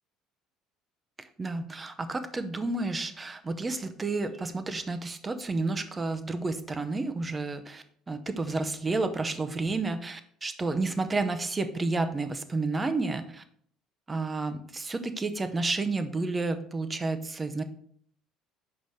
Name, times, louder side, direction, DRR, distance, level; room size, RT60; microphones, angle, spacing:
voice 1, 1.2-13.4 14.1-17.6, right 3 dB, 15° right, 10 dB, 0.6 m, -31 dB
6.4 x 4.9 x 4.1 m, 0.62 s
cardioid pair, 140°, 0 cm